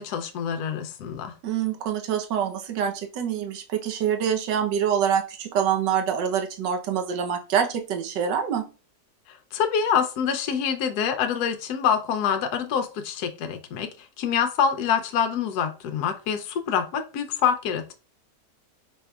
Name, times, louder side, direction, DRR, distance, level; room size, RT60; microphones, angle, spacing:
voice 1, 0.0-1.3 9.3-17.9, left 7 dB, 70° left, 6 dB, 1.1 m, -26 dB
voice 2, 1.4-8.6, right 8 dB, 90° right, 5 dB, 1.5 m, -25 dB
5.3 x 4.1 x 2.3 m, 0.33 s
omnidirectional pair, 1.8 m